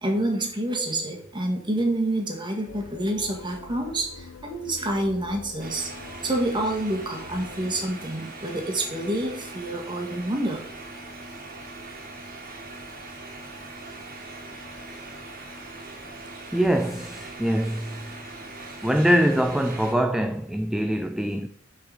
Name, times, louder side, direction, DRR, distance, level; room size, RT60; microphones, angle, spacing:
voice 1, 0.0-5.9 6.2-10.6, right 1 dB, 25° right, 1.6 m, -28 dB
sound 1, 2.7-7.8, left 4 dB, 90° left, 0.7 m, -44 dB
sound 2, 5.6-19.9, right 2 dB, 45° right, 1.8 m, -41 dB
voice 2, 16.5-18.2 18.8-21.5, equal, ahead, 0.3 m, -23 dB
6.4 x 5.9 x 4.8 m
head